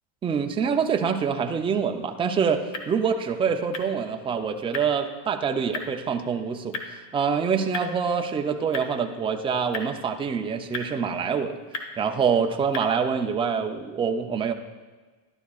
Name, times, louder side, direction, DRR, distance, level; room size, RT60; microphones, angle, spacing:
voice 1, 0.2-6.8 7.1-11.6 12.0-14.5, right 6 dB, 15° right, 4 dB, 0.4 m, -25 dB
sound 1, 1.8-13.2, left 4 dB, 50° left, 1.2 m, -41 dB
12.0 x 11.5 x 2.4 m, 1.4 s
cardioid pair, 140°, 38 cm